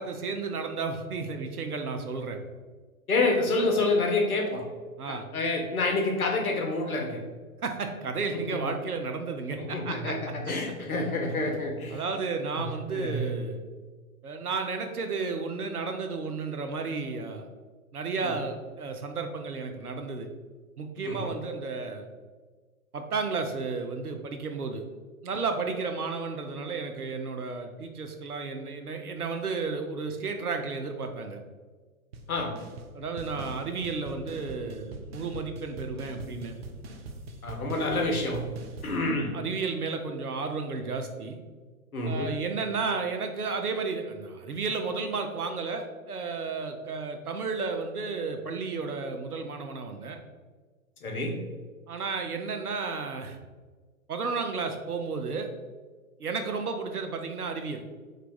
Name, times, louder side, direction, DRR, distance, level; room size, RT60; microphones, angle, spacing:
voice 1, 0.0-2.4 5.0-5.3 7.6-10.1 11.9-13.6 14.2-17.5 17.9-20.3 20.8-22.1 22.9-24.8 25.2-31.4 32.9-36.6 39.3-41.4 42.0-50.2 51.9-53.4 54.1-55.5 56.2-57.8, right 4 dB, 85° right, 5 dB, 0.6 m, -32 dB
voice 2, 3.1-4.6 5.1-7.2 8.3-8.7 9.6-12.0 12.5-12.6 12.9-13.3 18.2-18.3 21.0-21.3 32.3-32.5 37.4-38.5 38.8-39.3 41.9-42.3 51.0-51.3, left 2 dB, 75° left, 2 dB, 0.9 m, -28 dB
sound 1, 32.1-32.3 32.5-32.9 33.2-39.0, right 2 dB, 45° right, 0.4 m, -42 dB
3.2 x 2.2 x 3.9 m, 1.4 s
figure-of-eight pair, 110°, 43 cm